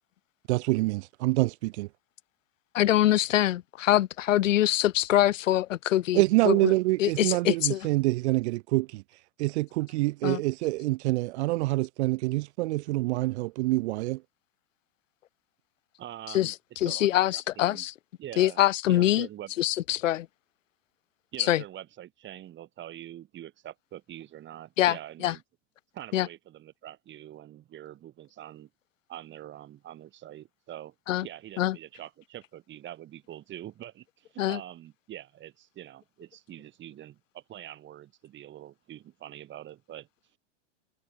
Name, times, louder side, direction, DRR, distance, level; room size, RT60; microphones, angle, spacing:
voice 1, 0.5-1.9 6.1-9.0 9.4-14.2, right 20 dB, 60° right, 0.7 m, -26 dB
voice 2, 2.7-6.7 7.0-7.9 10.2-10.4 16.3-16.5 16.8-17.9 18.4-19.3 19.6-20.3 21.5-21.6 24.8-24.9 25.2-25.3 26.1-26.3 31.1-31.3 31.6-31.8 34.4-34.6, left 13 dB, 90° left, 1.4 m, -24 dB
voice 3, 16.0-17.9 18.2-18.6 18.9-19.5 21.3-25.4 25.9-28.7 29.1-30.9 31.2-40.1, right 12 dB, 30° right, 7.2 m, -44 dB
supercardioid pair, 140°, 37 cm